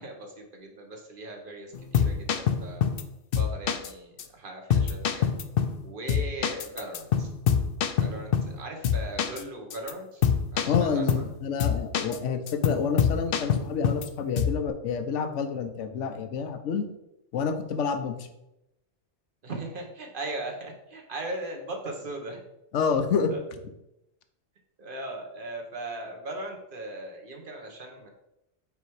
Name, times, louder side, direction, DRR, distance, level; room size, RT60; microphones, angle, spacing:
voice 1, 0.0-2.8 3.3-5.2 5.8-7.3 8.0-10.2 10.5-11.2 19.4-22.4 23.3-23.4 24.8-28.1, right 2 dB, 45° right, 2 dB, 1.3 m, -38 dB
sound 1, 1.7-3.0 3.3-3.9 4.2-4.3 4.7-5.8 6.1-8.6 8.8-9.4 9.7-9.9 10.2-11.3 11.6-12.2 12.5-14.1 14.4-14.6, left 7 dB, 60° left, 0.7 m, -25 dB
voice 2, 10.7-16.9 17.3-18.3 22.7-23.3, left 6 dB, 80° left, 8 dB, 1.0 m, -28 dB
5.2 x 4.6 x 4.7 m, 0.88 s
omnidirectional pair, 1.2 m